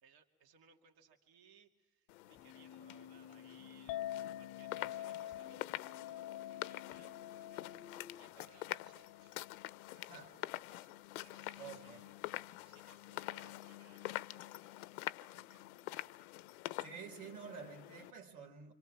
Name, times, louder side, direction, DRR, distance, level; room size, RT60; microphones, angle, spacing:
voice 1, 0.0-4.0 4.4-7.7 8.2-9.3 9.9-12.1 12.6-14.8 15.3-16.3, right 6 dB, 55° right, 2.4 m, -66 dB
sound 1, 2.1-18.1, left 18 dB, 90° left, 0.8 m, -46 dB
Keyboard (musical), 2.4-8.3, left 8 dB, 25° left, 0.9 m, -56 dB
Chink clink, 3.9-10.2, left 12 dB, 50° left, 0.8 m, -47 dB
voice 2, 11.6-12.0 16.8-18.7, right 6 dB, 90° right, 4.2 m, -50 dB
27.0 x 26.5 x 5.9 m
supercardioid pair, 150°, 42 cm